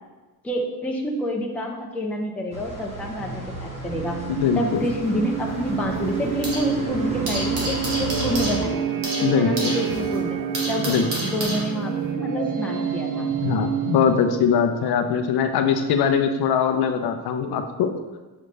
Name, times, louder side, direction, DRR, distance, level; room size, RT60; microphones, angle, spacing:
voice 1, 0.4-4.2 4.6-8.8 9.3-11.0 11.2-13.3, equal, 5° left, -1 dB, 0.5 m, -28 dB
sound 1, 2.5-8.6, left 1 dB, 15° right, 1.0 m, -34 dB
sound 2, 3.2-14.6, right 7 dB, 55° right, 0.6 m, -28 dB
voice 2, 4.3-4.8 9.2-9.8 10.9-11.1 13.4-17.9, left 7 dB, 70° left, 6 dB, 0.7 m, -21 dB
sound 3, 4.7-6.8 7.0-12.1, right 1 dB, 80° right, 1.8 m, -32 dB
6.6 x 5.0 x 3.3 m, 1.2 s
cardioid pair, 175°, 39 cm